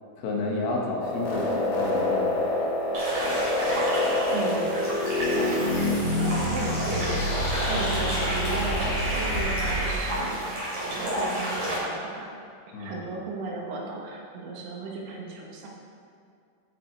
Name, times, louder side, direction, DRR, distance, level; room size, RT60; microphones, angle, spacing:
voice 1, 0.2-2.4 12.7-12.9, left 2 dB, 70° left, -1 dB, 3.2 m, -30 dB
sound 1, 1.0-9.9, left 1 dB, 50° left, 4.2 m, -27 dB
sound 2, 2.9-11.8, right 1 dB, 40° right, 3.8 m, -31 dB
voice 2, 4.3-4.7 5.3-5.6 6.2-7.3 7.7-8.9 9.1-12.3 12.8-15.7, right 3 dB, 85° right, -2 dB, 3.8 m, -35 dB
14.5 x 6.2 x 4.5 m, 2.3 s
omnidirectional pair, 5.2 m